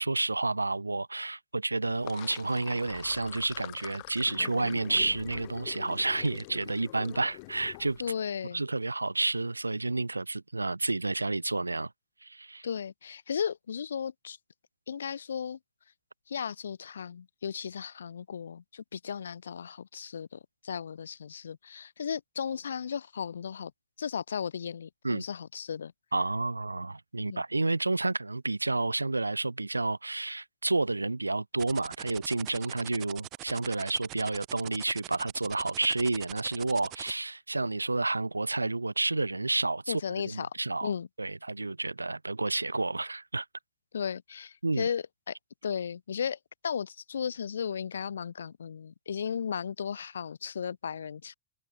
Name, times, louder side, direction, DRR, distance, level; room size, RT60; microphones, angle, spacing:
voice 1, 0.0-8.0 8.5-11.9 12.2-12.7 25.0-25.2 26.1-40.0 40.3-40.9 41.2-43.5 44.6-44.9, right 2 dB, 80° right, 2.3 m, -30 dB
Sink (filling or washing), 1.8-8.1, left 27 dB, 50° left, 1.5 m, -45 dB
voice 2, 8.0-8.6 12.6-14.4 14.9-15.6 16.3-23.7 24.0-25.9 27.2-27.4 39.9-40.5 40.8-41.1 43.9-45.3 45.6-46.4 46.6-51.3, left 7 dB, 70° left, 2.7 m, -35 dB
sound 1, 31.6-37.1, right 19 dB, 40° right, 3.4 m, -43 dB
figure-of-eight pair, 90°, 0 cm